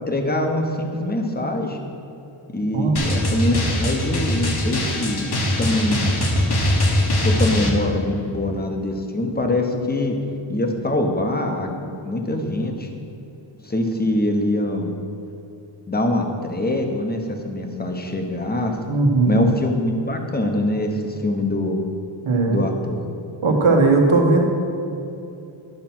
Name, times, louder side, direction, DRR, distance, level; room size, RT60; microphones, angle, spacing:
voice 1, 0.1-1.8 2.5-5.3 5.6-6.2 7.2-10.2 10.5-11.8 12.0-12.9 13.6-15.0 15.9-18.8 19.3-21.8 22.5-23.0, left 1 dB, 20° left, 3 dB, 0.9 m, -23 dB
Drum, 3.0-7.7, left 1 dB, 50° left, 1.3 m, -21 dB
voice 2, 18.9-19.4 22.2-22.6 23.4-24.4, right 3 dB, 85° right, 1 dB, 1.4 m, -17 dB
11.0 x 5.7 x 6.0 m, 2.8 s
wide cardioid pair, 145°, 49 cm